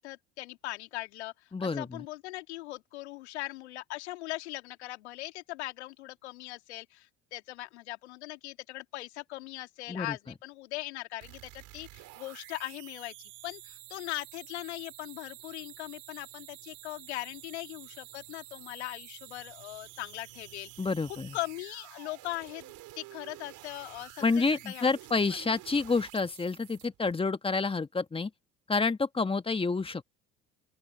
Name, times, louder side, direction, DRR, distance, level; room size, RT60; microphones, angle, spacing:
voice 1, 0.0-1.3 1.6-13.1 13.4-20.7 21.1-24.8, left 18 dB, 85° left, 2.5 m, -40 dB
voice 2, 1.5-2.1 9.9-10.2 20.8-21.4 24.2-28.3 28.7-30.0, left 4 dB, 15° left, 1.5 m, -29 dB
sound 1, 11.2-27.1, right 17 dB, 65° right, 4.1 m, -50 dB
open air
hypercardioid pair, 75°, 33 cm